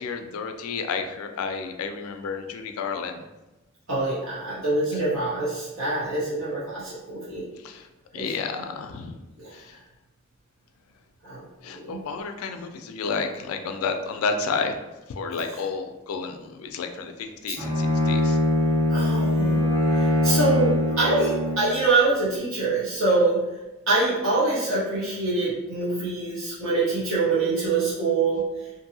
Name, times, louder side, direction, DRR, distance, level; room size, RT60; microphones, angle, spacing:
voice 1, 0.0-3.2 7.6-7.8 8.1-9.2 9.5-9.8 11.6-14.7 15.1-18.4, left 5 dB, 85° left, 6 dB, 0.3 m, -31 dB
voice 2, 3.9-7.4 8.1-8.3 9.4-9.5 11.3-11.4 11.9-12.0 18.9-19.6 20.2-23.4 23.9-28.4, right 3 dB, 70° right, -9 dB, 0.9 m, -24 dB
Bowed string instrument, 17.6-21.8, left 1 dB, 15° right, 0.7 m, -22 dB
2.6 x 2.6 x 2.6 m, 1.0 s
head